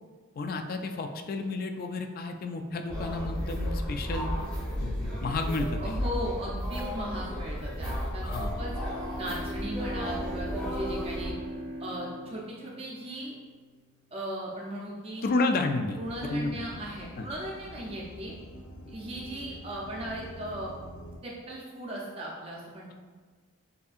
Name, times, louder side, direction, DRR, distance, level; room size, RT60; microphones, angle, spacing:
voice 1, 0.4-4.3 4.8-5.9 8.2-8.6 15.2-16.9 17.2-17.3, left 3 dB, 40° left, 5 dB, 0.3 m, -31 dB
sound 1, 2.9-11.3, equal, 5° left, 0.9 m, -33 dB
voice 2, 5.8-8.7 9.2-11.3 11.8-13.3 14.1-15.2 16.0-18.3 18.9-20.7 21.2-22.9, equal, 25° right, -3 dB, 0.5 m, -37 dB
Bowed string instrument, 8.3-13.5, right 1 dB, 65° left, 1.0 m, -40 dB
sound 2, 16.0-21.2, equal, 85° left, 0.6 m, -46 dB
6.7 x 2.7 x 2.4 m, 1.5 s
head